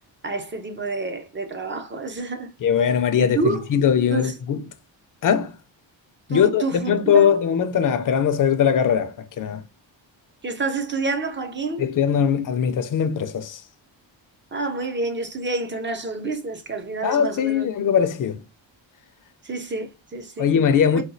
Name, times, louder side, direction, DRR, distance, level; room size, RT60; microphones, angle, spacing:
voice 1, 0.2-2.5 3.2-3.6 4.1-4.3 6.3-7.3 10.4-11.8 14.5-17.7 19.4-20.5 20.9-21.0, right 3 dB, 25° right, 0.4 m, -28 dB
voice 2, 2.6-4.7 5.2-5.6 6.3-9.6 11.8-13.6 17.0-18.4 20.4-21.0, left 8 dB, 45° left, 0.5 m, -20 dB
4.1 x 2.3 x 2.5 m
wide cardioid pair, 160°, 47 cm